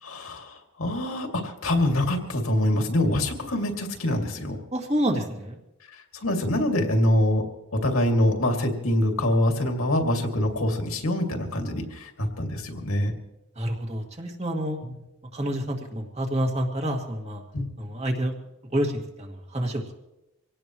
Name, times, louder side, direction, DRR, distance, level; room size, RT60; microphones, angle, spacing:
voice 1, 0.0-4.6 6.1-13.1 14.8-14.9 17.5-17.7, left 1 dB, 75° left, 3 dB, 2.5 m, -25 dB
voice 2, 4.7-5.6 13.6-14.8 15.3-17.4 17.8-18.3 18.7-19.9, equal, 30° right, 2 dB, 2.2 m, -28 dB
25.0 x 17.5 x 3.1 m, 0.92 s
head